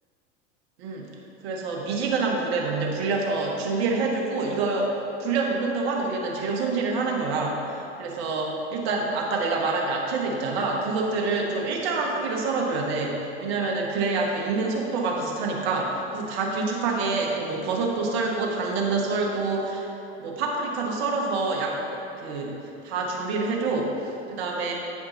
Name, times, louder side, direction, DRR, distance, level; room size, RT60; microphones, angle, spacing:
voice 1, 0.8-1.1 1.4-4.9 5.2-19.8 20.2-24.7, right 3 dB, 70° right, -1 dB, 1.4 m, -27 dB
8.4 x 5.1 x 4.0 m, 2.8 s
hypercardioid pair, 90°, 34 cm